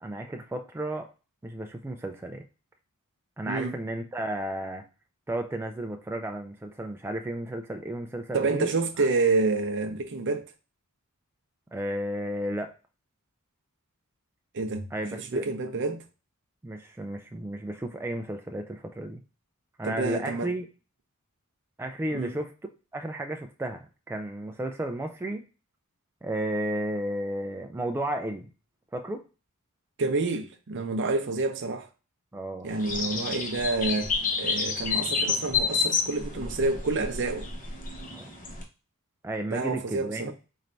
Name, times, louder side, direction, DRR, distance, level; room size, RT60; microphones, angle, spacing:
voice 1, 0.0-1.1 1.4-2.4 3.4-4.9 5.3-8.7 9.0-9.1 11.7-12.7 14.9-15.5 16.6-19.2 19.8-20.7 21.8-22.5 22.9-25.4 26.2-28.5 28.9-29.2 32.3-32.7 38.1-38.3 39.2-40.3, right 1 dB, 10° right, 0.3 m, -33 dB
voice 2, 3.5-3.8 8.3-10.4 14.5-16.0 19.8-20.5 22.1-22.3 30.0-31.9 32.6-37.5 39.5-40.3, right 3 dB, 55° right, 0.6 m, -28 dB
sound 1, 32.7-38.6, left 5 dB, 40° left, 0.9 m, -29 dB
4.3 x 3.2 x 2.5 m
head